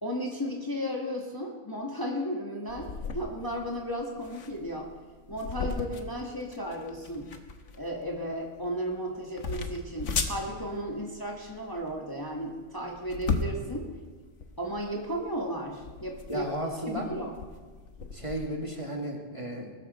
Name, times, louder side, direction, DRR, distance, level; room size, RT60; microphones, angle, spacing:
voice 1, 0.0-4.9 5.3-7.4 7.7-13.9 14.6-17.3, equal, 20° left, -1 dB, 1.4 m, -34 dB
sound 1, 2.7-18.4, left 4 dB, 80° left, 1.4 m, -37 dB
voice 2, 16.3-17.1 18.1-19.7, right 1 dB, 25° right, 0 dB, 2.0 m, -34 dB
20.0 x 13.0 x 4.1 m, 1.4 s
omnidirectional pair, 1.2 m